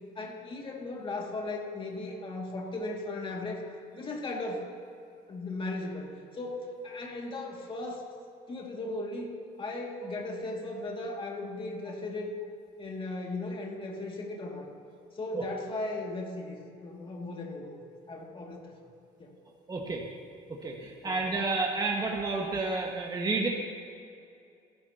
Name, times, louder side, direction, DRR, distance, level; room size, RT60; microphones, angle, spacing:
voice 1, 0.2-3.6 3.9-4.7 5.3-6.1 6.3-8.0 8.5-9.3 9.6-12.4 12.8-14.7 15.1-17.8 18.1-18.7 19.2-19.3 21.0-21.2, left 2 dB, 30° left, -1 dB, 2.5 m, -37 dB
voice 2, 19.7-20.0 20.6-23.5, right 3 dB, 25° right, -1 dB, 1.8 m, -30 dB
29.5 x 12.0 x 3.0 m, 2.5 s
cardioid pair, 110°, 17 cm